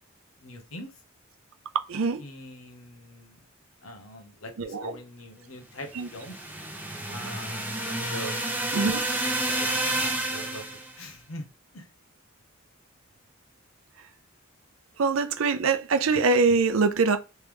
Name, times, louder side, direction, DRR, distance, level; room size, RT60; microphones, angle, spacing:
voice 1, 0.4-1.0 2.2-3.4 3.8-6.4 7.1-8.5 9.4-9.7 10.0-11.4 11.7-11.9, left 1 dB, 85° left, 1.0 m, -42 dB
voice 2, 1.9-2.2 4.6-4.9 5.9-6.1 8.7-9.0 15.0-17.2, right 4 dB, 75° right, 0.6 m, -23 dB
sound 1, 6.0-10.9, right 2 dB, 10° right, 0.9 m, -30 dB
3.4 x 3.3 x 3.1 m
head